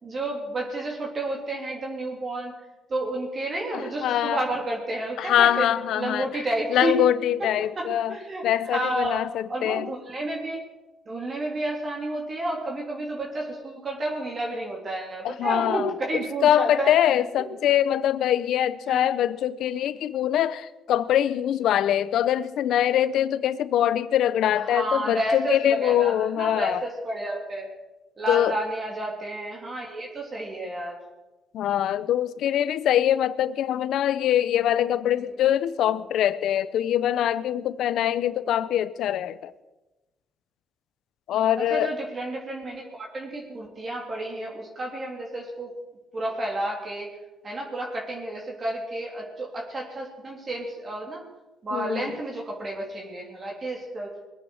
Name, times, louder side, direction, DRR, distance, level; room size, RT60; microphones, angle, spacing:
voice 1, 0.0-2.5 2.9-5.6 5.9-6.9 7.8-8.5 8.7-9.2 9.5-10.6 11.1-16.9 18.9-19.1 24.7-27.7 28.2-31.0 35.2-35.3 41.7-45.7 46.1-47.1 47.4-51.2 51.6-54.1, right 1 dB, 40° right, -1 dB, 3.4 m, -31 dB
voice 2, 3.7-4.4 5.2-6.3 6.7-8.2 8.4-9.9 15.2-15.9 16.4-26.8 28.3-28.5 31.5-39.5 41.3-41.9 51.7-52.2, left 11 dB, 80° left, 16 dB, 0.7 m, -23 dB
21.5 x 8.7 x 6.4 m, 1.1 s
cardioid pair, 90°, 0 cm